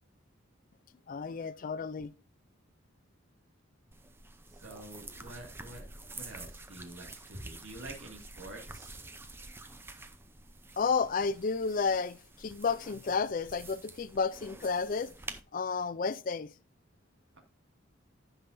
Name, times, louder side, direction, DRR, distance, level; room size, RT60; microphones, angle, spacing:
voice 1, 1.1-2.1 10.8-15.1 15.5-16.5, left 5 dB, 40° left, 0.4 m, -31 dB
sound 1, 3.9-15.4, right 2 dB, 10° right, 0.5 m, -48 dB
voice 2, 4.5-5.9 6.1-8.9 17.3-17.4, right 1 dB, 75° right, 2.1 m, -47 dB
15.5 x 5.6 x 2.6 m
head